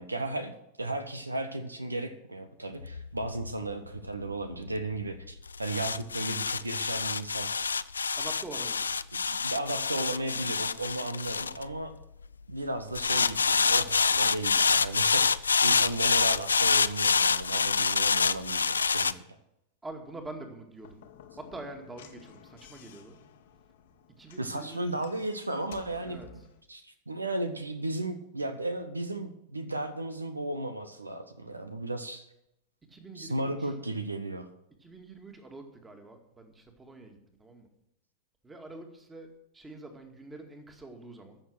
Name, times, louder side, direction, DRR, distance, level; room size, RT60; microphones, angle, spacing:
voice 1, 0.0-7.5 9.3-11.9 12.5-19.4 24.4-26.2 26.7-32.3 33.2-34.5, right 2 dB, 80° right, 10 dB, 0.9 m, -35 dB
sound 1, 2.8-12.3 13.0-19.1, left 5 dB, 75° left, 0.4 m, -27 dB
voice 2, 8.2-9.0 19.8-21.0 21.4-23.2 24.2-24.9 26.1-26.3 32.8-33.7 34.8-37.7 38.4-41.4, right 2 dB, 15° right, 5 dB, 2.1 m, -45 dB
Slam / Knock, 20.8-26.6, left 8 dB, 55° left, 1.2 m, -53 dB
14.5 x 6.6 x 6.2 m, 0.81 s
figure-of-eight pair, 90°, 0 cm